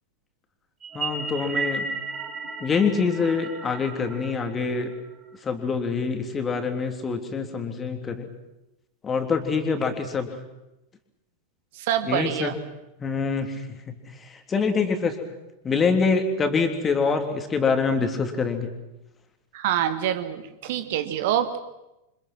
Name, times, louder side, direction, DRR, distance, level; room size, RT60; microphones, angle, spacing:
sound 1, 0.8-5.4, right 4 dB, 25° right, 6.3 m, -34 dB
voice 1, 0.9-1.9 2.6-4.9 5.4-8.3 9.0-10.4 12.1-12.5 13.0-13.9 14.5-15.2 15.6-18.7, left 5 dB, 20° left, 6 dB, 3.2 m, -25 dB
voice 2, 11.7-12.6 19.5-21.6, right 10 dB, 50° right, 10 dB, 1.6 m, -26 dB
28.0 x 25.5 x 6.2 m, 0.94 s
figure-of-eight pair, 90°, 0 cm